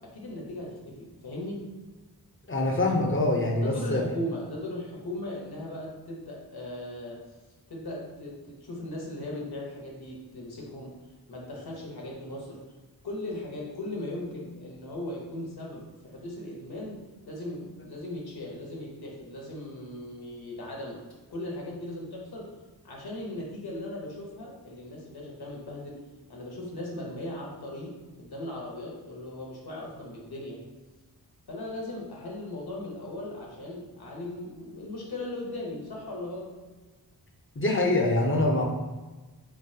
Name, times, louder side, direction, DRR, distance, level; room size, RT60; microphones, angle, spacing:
voice 1, 0.1-1.7 3.6-7.2 7.7-10.9 11.3-12.6 13.0-17.0 17.3-21.0 21.3-22.5 22.8-26.0 26.3-30.6 31.5-36.6, left 1 dB, 65° left, -2 dB, 1.0 m, -38 dB
voice 2, 2.5-4.0 37.6-38.6, left 2 dB, 30° left, 0 dB, 0.6 m, -24 dB
3.9 x 2.8 x 2.7 m, 1.2 s
wide cardioid pair, 65°, 40 cm